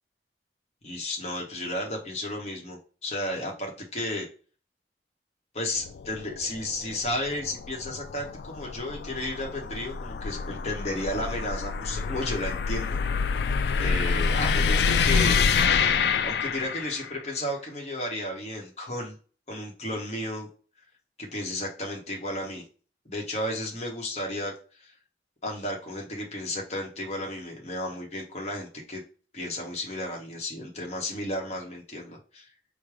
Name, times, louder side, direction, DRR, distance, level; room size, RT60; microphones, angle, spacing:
voice 1, 0.8-4.3 5.5-13.0 13.8-15.5 16.2-19.2 19.5-20.5 21.2-22.6 23.1-24.5 24.8-24.9 25.4-29.0 29.3-32.5, left 1 dB, 40° left, 0 dB, 0.9 m, -33 dB
sound 1, 5.8-17.2, left 5 dB, 70° left, 0.3 m, -27 dB
4.8 x 2.1 x 4.7 m, 0.38 s
head